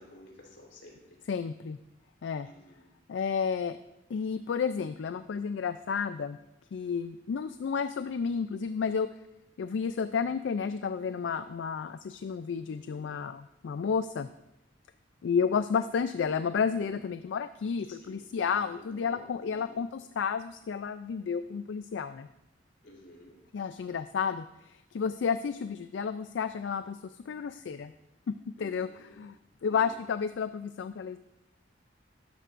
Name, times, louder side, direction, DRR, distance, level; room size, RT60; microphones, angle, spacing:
voice 1, 0.0-1.2 2.4-2.9 12.6-13.1 17.9-19.8 22.8-23.4 28.6-29.2 29.7-29.9, left 1 dB, 70° left, -2 dB, 3.7 m, -53 dB
voice 2, 1.3-1.8 2.2-2.5 3.1-3.8 4.1-6.4 6.7-9.1 9.6-14.3 15.2-22.3 23.5-27.9 28.3-28.4 28.6-29.4 29.6-31.2, left 6 dB, 90° left, 11 dB, 0.4 m, -31 dB
13.0 x 11.0 x 2.5 m, 0.88 s
head